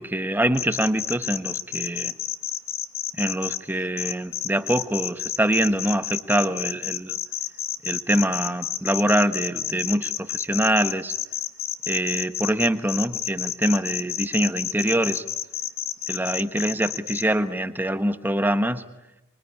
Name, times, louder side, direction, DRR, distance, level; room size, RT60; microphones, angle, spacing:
voice 1, 0.0-2.1 3.1-7.2 7.8-11.2 11.9-15.2 16.1-18.8, right 1 dB, 10° right, 10 dB, 1.1 m, -24 dB
sound 1, 0.5-3.6 4.0-17.2, left 11 dB, 65° left, 1.5 m, -30 dB
25.0 x 23.5 x 9.9 m, 0.95 s
head